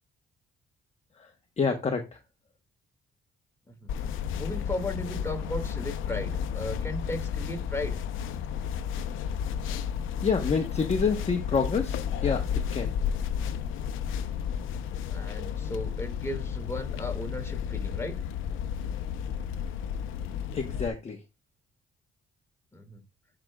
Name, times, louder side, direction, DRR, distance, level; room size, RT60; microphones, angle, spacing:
voice 1, 1.6-2.2 10.2-12.9 20.5-21.2, left 5 dB, 35° left, 1.0 m, -28 dB
sound 1, 3.9-20.9, left 8 dB, 90° left, 0.7 m, -32 dB
voice 2, 4.4-8.0 14.5-14.8 15.1-18.2 22.7-23.0, left 1 dB, 15° left, 2.0 m, -36 dB
10.5 x 5.1 x 2.3 m
cardioid pair, 90°, 20 cm